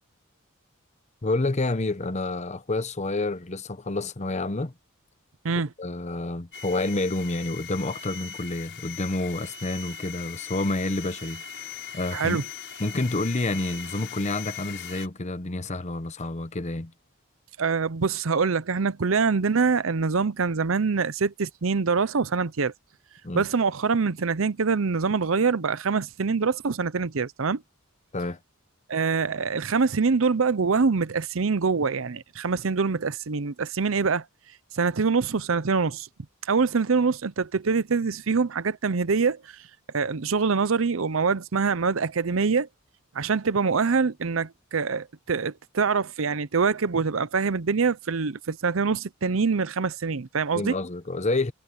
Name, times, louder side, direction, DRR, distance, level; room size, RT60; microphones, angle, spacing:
voice 1, 1.2-4.7 5.8-12.4 12.8-16.9 23.2-23.4 28.1-28.4 50.6-51.5, left 2 dB, 35° left, 0.9 m, -29 dB
sound 1, 6.5-15.1, left 7 dB, 55° left, 7.0 m, -40 dB
voice 2, 12.1-12.4 17.6-22.7 23.3-27.6 28.9-34.2 34.7-36.1 36.4-39.6 39.9-42.7 43.1-50.8, right 5 dB, 65° right, 0.7 m, -24 dB
head